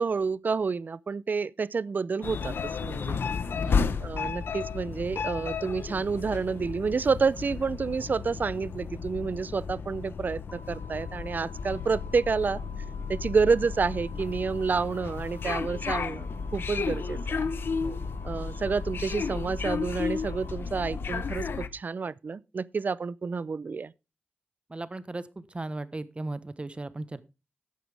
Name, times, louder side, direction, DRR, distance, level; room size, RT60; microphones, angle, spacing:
voice 1, 0.0-3.2 4.0-12.6 13.1-17.5 18.2-23.9, right 5 dB, 55° right, 0.5 m, -29 dB
sound 1, 2.2-21.7, left 5 dB, 80° left, 0.9 m, -33 dB
voice 2, 3.5-4.3 17.8-18.0 24.7-27.2, right 2 dB, 30° right, 1.1 m, -37 dB
sound 2, 10.5-20.5, left 2 dB, 55° left, 3.5 m, -52 dB
14.0 x 9.3 x 3.4 m
cardioid pair, 70°, 4 cm